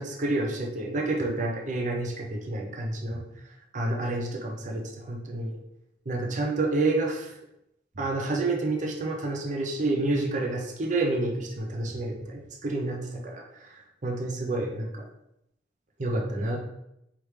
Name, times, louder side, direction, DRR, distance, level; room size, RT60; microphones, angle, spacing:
voice 1, 0.0-3.2 3.7-5.6 6.1-7.3 8.0-13.7 14.0-15.0 16.0-16.6, right 2 dB, 45° right, 1 dB, 0.7 m, -29 dB
4.4 x 3.5 x 3.3 m, 0.83 s
head